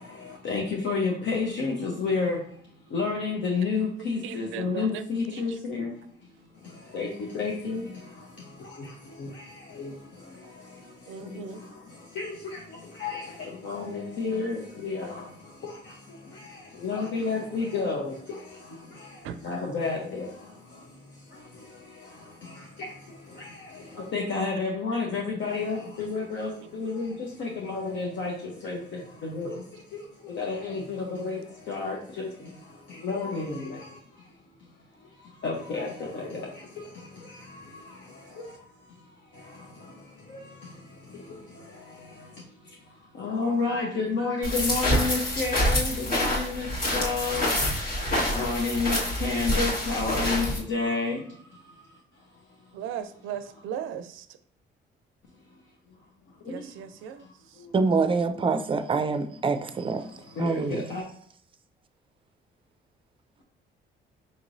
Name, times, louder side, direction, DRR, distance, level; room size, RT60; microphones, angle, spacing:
voice 1, 0.4-2.4 2.9-5.8 6.9-7.1 7.3-7.8 12.2-12.3 13.0-13.2 13.7-13.8 14.2-14.5 14.8-15.0 16.8-18.1 19.5-20.0 24.1-26.5 26.8-27.1 27.4-28.3 28.6-28.7 29.3-29.5 30.4-30.8 31.2-31.4 31.7-32.0 33.0-33.5 35.4-35.9 43.2-46.6 46.9-47.4 48.4-49.0 49.2-51.1 60.4-60.5 60.9-61.0, left 4 dB, 65° left, 0.9 m, -29 dB
voice 2, 4.2-5.0 5.3-5.9 9.9-10.0 11.1-11.6 19.2-19.4 52.7-54.3 56.5-57.2, right 8 dB, 90° right, 0.4 m, -37 dB
sound 1, 44.4-50.6, left 1 dB, 45° left, 1.6 m, -27 dB
voice 3, 57.7-60.1 60.4-60.9, right 4 dB, 25° right, 0.4 m, -25 dB
5.2 x 3.0 x 2.6 m
cardioid pair, 90°, 20 cm